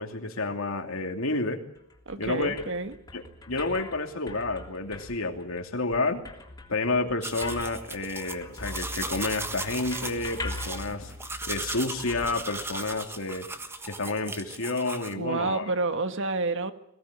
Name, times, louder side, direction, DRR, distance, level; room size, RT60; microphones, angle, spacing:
voice 1, 0.0-1.6 2.2-2.6 3.1-6.2 6.7-11.1 11.5-13.5 13.8-15.6, left 3 dB, 70° left, 2.8 m, -30 dB
sound 1, 1.7-13.2, left 2 dB, 20° left, 3.3 m, -42 dB
voice 2, 2.0-2.9 15.1-16.7, right 3 dB, 65° right, 1.6 m, -29 dB
sound 2, 7.2-15.1, right 2 dB, 10° right, 1.3 m, -37 dB
22.0 x 17.5 x 9.8 m
head